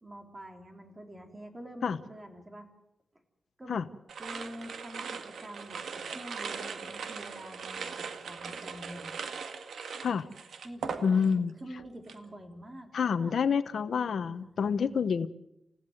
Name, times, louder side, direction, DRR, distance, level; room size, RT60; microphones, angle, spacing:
voice 1, 0.0-2.7 3.6-3.9 4.2-9.1 10.6-13.4 14.4-14.5, equal, 20° right, 5 dB, 3.5 m, -46 dB
sound 1, 4.1-11.5 11.8-12.3, right 5 dB, 85° right, 1.8 m, -40 dB
voice 2, 11.0-11.5 12.9-15.3, left 6 dB, 70° left, 13 dB, 0.9 m, -28 dB
29.0 x 16.0 x 8.0 m, 0.87 s
wide cardioid pair, 115°, 0 cm